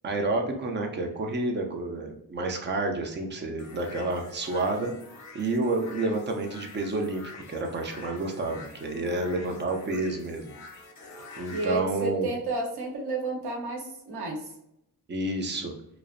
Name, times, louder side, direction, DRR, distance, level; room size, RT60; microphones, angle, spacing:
voice 1, 0.0-4.9 5.3-10.5 11.4-12.3 15.1-15.7, right 2 dB, 30° right, 3 dB, 0.4 m, -29 dB
sound 1, 3.6-11.7, left 3 dB, 45° left, 0.6 m, -47 dB
voice 2, 9.0-9.6 11.5-14.5, right 2 dB, 70° right, -1 dB, 0.9 m, -32 dB
2.5 x 2.0 x 2.5 m, 0.80 s
cardioid pair, 115°, 41 cm